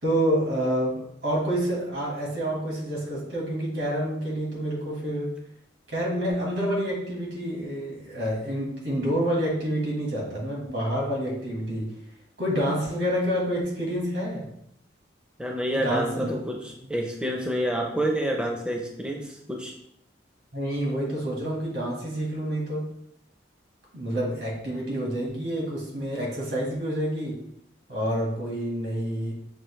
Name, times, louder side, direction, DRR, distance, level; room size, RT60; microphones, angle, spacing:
voice 1, 0.0-5.3 5.9-11.9 12.4-14.5 15.7-16.3 20.5-22.9 23.9-27.4 27.9-29.3, equal, 75° right, -3 dB, 1.6 m, -28 dB
voice 2, 15.4-19.7, right 1 dB, 5° right, 0 dB, 0.5 m, -28 dB
6.1 x 2.6 x 3.2 m, 0.76 s
head